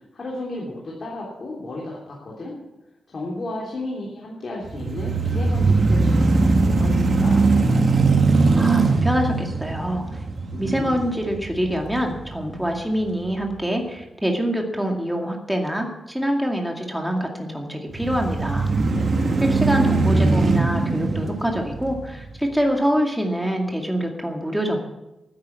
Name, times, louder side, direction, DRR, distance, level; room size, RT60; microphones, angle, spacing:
voice 1, 0.1-2.5 3.1-7.5 10.5-11.0 18.8-19.5, left 2 dB, 40° left, -3 dB, 3.2 m, -33 dB
sound 1, 4.6-12.8 13.3-13.4 17.9-22.4, right 3 dB, 40° right, 1.4 m, -20 dB
voice 2, 8.5-10.0 10.6-15.9 16.1-18.7 19.4-24.8, equal, 5° right, 2 dB, 2.2 m, -25 dB
12.5 x 10.5 x 8.3 m, 0.94 s
wide cardioid pair, 160°, 0 cm